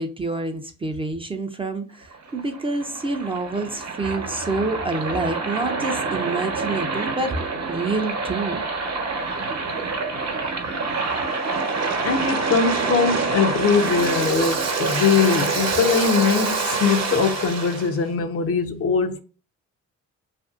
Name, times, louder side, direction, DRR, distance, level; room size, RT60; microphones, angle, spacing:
voice 1, 0.0-7.4 7.7-8.6 11.0-11.3, right 3 dB, 20° right, 0.4 m, -27 dB
Waves surf, 2.1-17.9, right 4 dB, 55° right, 0.9 m, -26 dB
voice 2, 12.0-19.2, left 6 dB, 50° left, 0.5 m, -21 dB
2.6 x 2.5 x 2.4 m
cardioid pair, 90°, 30 cm